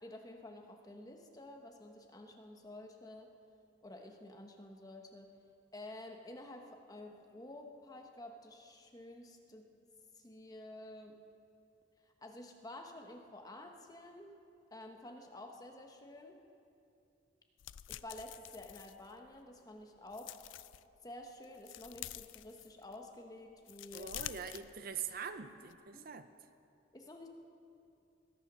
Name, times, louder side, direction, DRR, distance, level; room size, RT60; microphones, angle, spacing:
voice 1, 0.0-3.3 3.8-5.4 5.7-9.7 10.1-11.2 12.0-14.3 14.7-16.4 17.9-20.4 21.0-24.1 25.9-26.1 26.9-27.3, left 1 dB, 20° left, 3 dB, 1.0 m, -51 dB
sound 1, 17.6-19.5 20.0-20.8 21.3-23.1 23.5-25.3 25.6-25.7, left 13 dB, 80° left, 0.4 m, -48 dB
voice 2, 23.9-26.3, right 7 dB, 50° right, 10 dB, 0.5 m, -43 dB
20.0 x 9.0 x 6.1 m, 2.6 s
head